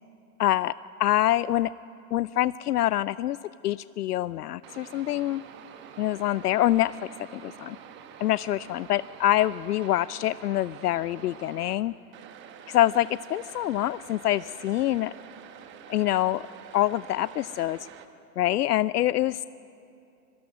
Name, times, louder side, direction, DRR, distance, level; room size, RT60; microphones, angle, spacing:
voice 1, 0.4-0.7 1.0-1.7 2.1-3.4 3.6-5.4 6.0-7.8 8.2-11.9 12.7-15.1 15.9-16.5 16.7-17.9 18.4-19.4, left 14 dB, 70° left, 18 dB, 0.5 m, -25 dB
sound 1, 4.6-11.8 12.1-18.1, right 8 dB, 25° right, 1.2 m, -47 dB
26.0 x 22.5 x 6.1 m, 2.6 s
hypercardioid pair, 130°, 48 cm